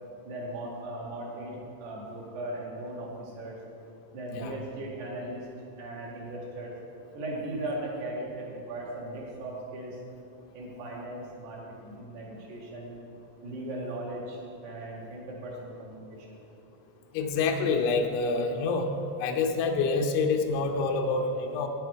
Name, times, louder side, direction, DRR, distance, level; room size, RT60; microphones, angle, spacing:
voice 1, 0.2-3.6 4.1-5.5 5.8-6.7 7.1-10.0 10.5-13.0 13.4-16.4, right 1 dB, 60° right, -3 dB, 3.3 m, -38 dB
voice 2, 17.1-18.9 19.2-21.7, left 4 dB, 90° left, 3 dB, 2.3 m, -27 dB
11.0 x 9.7 x 4.6 m, 2.7 s
omnidirectional pair, 5.9 m